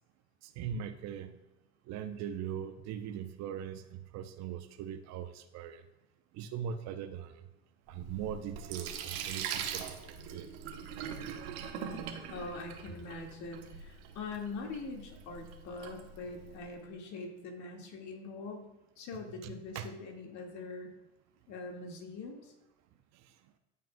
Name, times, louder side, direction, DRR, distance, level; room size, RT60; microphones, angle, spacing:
voice 1, 0.6-1.4 1.9-5.8 6.3-7.4 7.9-10.0 10.3-10.5 19.4-19.9, right 8 dB, 50° right, 10 dB, 0.7 m, -40 dB
Sink (filling or washing), 7.9-16.7, right 8 dB, 70° right, 1.1 m, -42 dB
voice 2, 11.7-18.7 19.0-20.9 21.5-22.5, left 3 dB, 55° left, 2 dB, 1.9 m, -43 dB
14.0 x 5.3 x 2.2 m, 0.99 s
hypercardioid pair, 80°, 35 cm